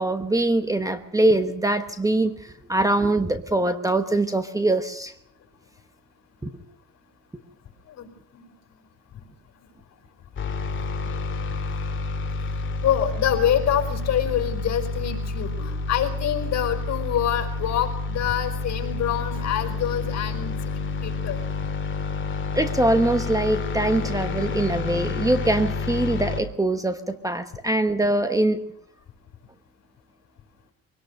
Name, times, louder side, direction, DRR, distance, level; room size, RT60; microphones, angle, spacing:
voice 1, 0.0-5.1 6.4-6.5 22.5-28.6, right 2 dB, 10° right, 9 dB, 1.1 m, -23 dB
voice 2, 7.9-8.4 12.8-20.5 21.0-21.4, left 10 dB, 55° left, 5 dB, 5.4 m, -26 dB
sound 1, 10.4-26.4, left 3 dB, 35° left, 2.4 m, -29 dB
23.5 x 18.5 x 6.6 m, 0.67 s
cardioid pair, 125°, 32 cm